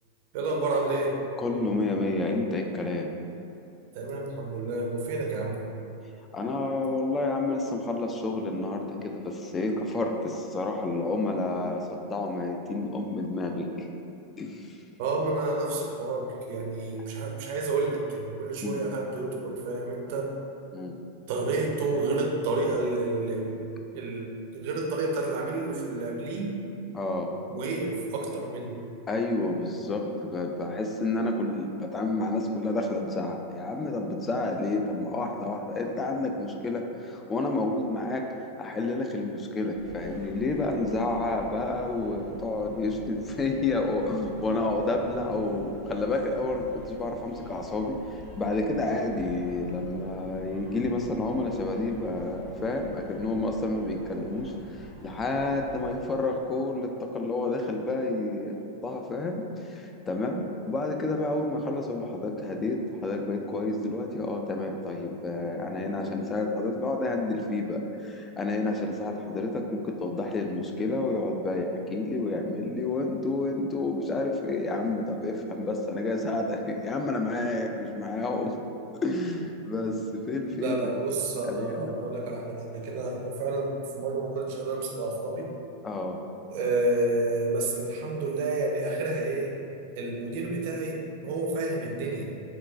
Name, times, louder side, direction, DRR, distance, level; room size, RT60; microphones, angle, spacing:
voice 1, 0.3-1.2 3.9-5.6 15.0-20.4 21.3-23.6 23.9-26.5 27.5-28.8 80.5-85.5 86.5-89.6 90.0-92.2, right 2 dB, 55° right, 0 dB, 0.4 m, -30 dB
voice 2, 1.4-3.1 6.3-13.9 14.4-14.8 18.6-18.8 20.7-21.0 26.9-27.3 29.1-38.3 38.6-78.6 78.9-80.9 81.4-82.1 85.8-86.2, left 2 dB, 20° left, 3 dB, 0.3 m, -30 dB
sound 1, 39.7-55.9, left 1 dB, 60° left, 1.2 m, -47 dB
3.7 x 2.3 x 2.4 m, 2.7 s
hypercardioid pair, 95°, 0 cm